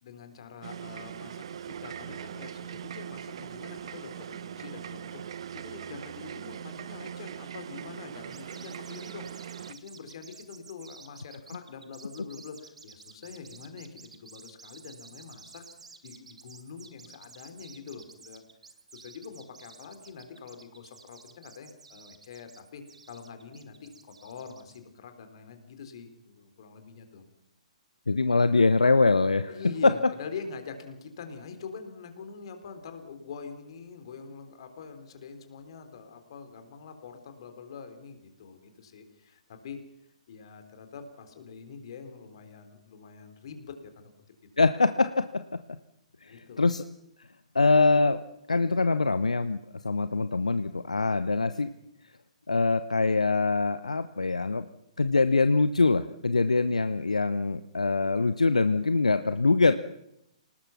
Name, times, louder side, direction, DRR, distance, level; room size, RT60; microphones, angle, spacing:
voice 1, 0.0-15.6 16.0-18.4 18.9-27.2 29.5-39.8 40.3-44.1 46.3-46.6 51.1-51.2, left 5 dB, 50° left, 7 dB, 3.8 m, -45 dB
sound 1, 0.6-9.7, right 9 dB, 50° right, 0.9 m, -41 dB
sound 2, 8.3-24.8, right 4 dB, 65° right, 2.4 m, -52 dB
voice 2, 28.1-29.5 29.8-29.9 44.6-45.4 46.2-46.8 47.5-48.2 48.5-51.7 52.5-54.6 55.0-59.7, left 3 dB, 75° left, 12 dB, 0.9 m, -23 dB
27.5 x 19.0 x 5.9 m, 0.81 s
figure-of-eight pair, 120°, 4 cm